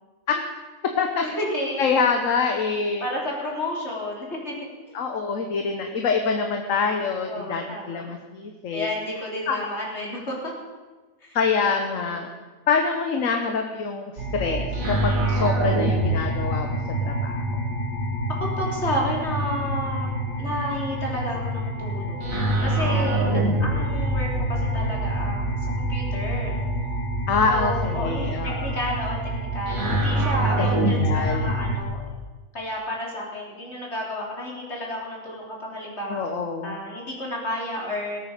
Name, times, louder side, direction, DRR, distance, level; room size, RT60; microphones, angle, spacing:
voice 1, 1.2-1.9 3.0-4.6 5.6-6.1 7.3-8.1 8.7-10.5 11.2-11.4 12.1-12.3 18.4-26.6 27.5-28.4 28.6-32.0 32.5-36.2 36.6-38.2, left 1 dB, 50° left, -2 dB, 3.7 m, -31 dB
voice 2, 1.8-3.0 4.9-8.9 9.5-9.7 11.3-12.3 12.7-17.4 23.2-23.8 27.3-28.8 30.6-30.7 31.0-31.5 36.1-36.8, left 5 dB, 70° left, 4 dB, 1.4 m, -25 dB
sound 1, 14.2-31.8, right 1 dB, 75° right, 2.8 m, -25 dB
18.5 x 8.8 x 6.6 m, 1.3 s
omnidirectional pair, 1.5 m